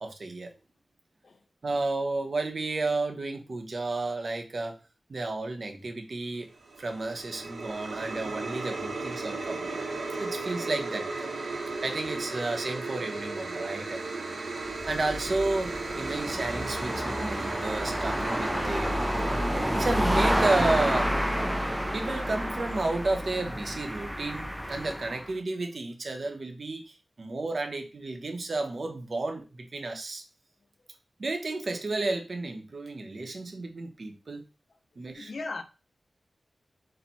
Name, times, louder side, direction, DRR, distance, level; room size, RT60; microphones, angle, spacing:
voice 1, 0.0-0.5 1.6-4.8 5.1-6.5 6.8-9.8 10.2-11.3 11.8-14.0 14.9-19.0 19.7-21.1 21.9-30.2 31.2-34.4 35.0-35.3, right 2 dB, 55° right, 0.7 m, -32 dB
sound 1, 6.6-23.0, right 3 dB, 85° right, 1.0 m, -36 dB
sound 2, 14.7-25.3, equal, 5° right, 0.3 m, -30 dB
voice 2, 35.2-35.6, left 3 dB, 60° left, 0.5 m, -36 dB
4.3 x 2.1 x 4.2 m
wide cardioid pair, 120°, 0 cm